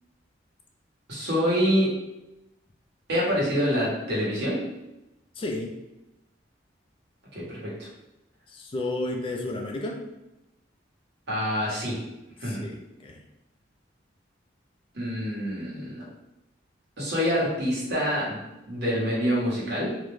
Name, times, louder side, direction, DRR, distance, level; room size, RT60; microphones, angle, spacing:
voice 1, 1.1-1.9 3.1-4.6 7.3-7.9 11.3-12.0 12.4-12.6 14.9-16.0 17.0-18.4 18.7-19.9, equal, 60° right, -6 dB, 1.1 m, -26 dB
voice 2, 5.4-5.7 8.5-10.0 12.4-13.2, left 2 dB, 30° left, 1 dB, 0.3 m, -32 dB
2.5 x 2.1 x 3.1 m, 0.95 s
head